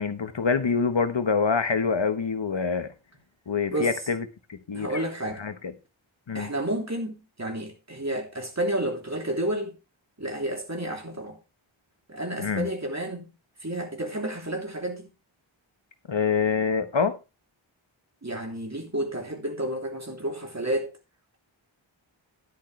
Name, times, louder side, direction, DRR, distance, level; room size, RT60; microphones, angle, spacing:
voice 1, 0.0-2.9 3.5-5.0 5.4-5.5 6.3-6.5 12.4-12.7 16.1-17.2, left 5 dB, 60° left, 1.2 m, -26 dB
voice 2, 4.7-5.4 6.3-9.8 10.2-11.4 12.1-13.3 13.6-15.1 18.2-20.9, right 1 dB, 30° right, 3.1 m, -31 dB
11.5 x 10.5 x 3.2 m
wide cardioid pair, 60°, 49 cm